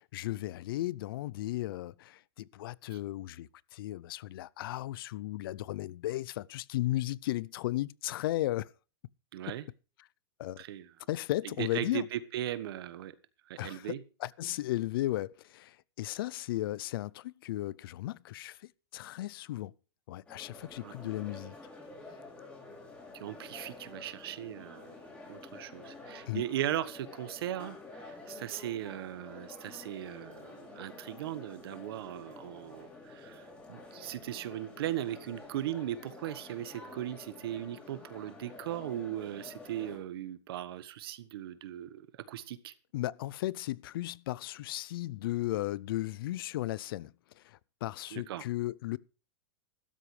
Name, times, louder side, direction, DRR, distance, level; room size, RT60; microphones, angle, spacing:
voice 1, 0.0-8.7 9.5-9.6 10.4-10.6 11.1-12.1 13.6-19.7 20.1-21.5 26.3-26.4 42.9-49.0, left 15 dB, 60° left, 0.5 m, -35 dB
voice 2, 9.3-9.6 10.6-10.9 11.6-13.1 13.5-14.0 20.8-20.9 23.1-25.0 25.3-42.7 48.1-48.4, right 12 dB, 65° right, 1.4 m, -38 dB
sound 1, 20.3-40.0, left 2 dB, 10° left, 5.1 m, -49 dB
15.0 x 12.5 x 3.3 m
supercardioid pair, 165°, 14 cm